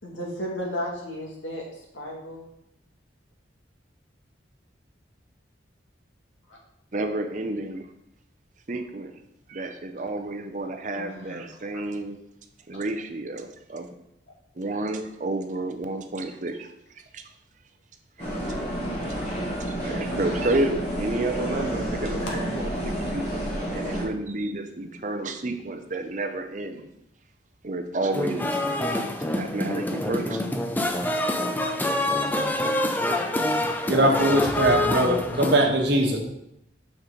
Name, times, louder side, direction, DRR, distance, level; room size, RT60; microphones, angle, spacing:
voice 1, 0.0-2.4 6.5-6.6 10.9-11.8 22.0-22.4, equal, 85° left, -2 dB, 2.2 m, -34 dB
voice 2, 6.9-7.9 8.7-9.1 9.5-12.2 12.7-13.9 14.6-16.7 17.1-17.2 19.6-26.9 27.6-28.6 29.3-30.4, right 2 dB, 40° right, 6 dB, 0.6 m, -30 dB
sound 1, 18.2-24.0, equal, 40° left, 3.0 m, -30 dB
sound 2, 28.1-35.6, left 1 dB, 10° left, 0.4 m, -26 dB
voice 3, 33.7-36.2, right 1 dB, 60° right, 1 dB, 1.4 m, -21 dB
6.7 x 6.0 x 3.8 m, 0.80 s
head